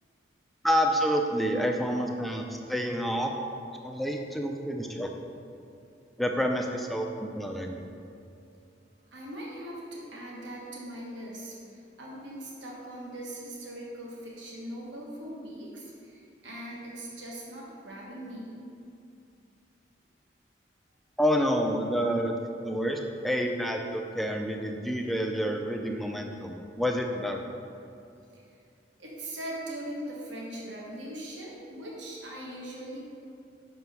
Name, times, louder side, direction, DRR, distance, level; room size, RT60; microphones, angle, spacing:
voice 1, 0.6-3.3 3.8-5.1 6.2-7.8 21.2-22.3 22.6-27.4, equal, ahead, 2 dB, 0.4 m, -28 dB
voice 2, 9.1-11.6 12.0-18.5 28.3-28.4 29.0-33.0, right 1 dB, 75° right, -4 dB, 1.2 m, -40 dB
5.9 x 4.6 x 5.5 m, 2.6 s
head